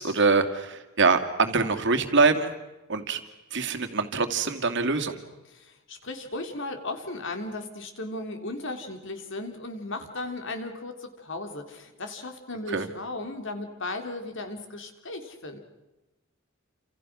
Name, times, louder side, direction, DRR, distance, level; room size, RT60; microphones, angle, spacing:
voice 1, 0.0-2.5 2.9-3.2 3.5-5.2 12.7-12.9, right 4 dB, 60° right, 6 dB, 2.5 m, -24 dB
voice 2, 5.5-15.6, left 2 dB, 60° left, 5 dB, 3.7 m, -36 dB
29.5 x 27.5 x 6.3 m, 1.0 s
head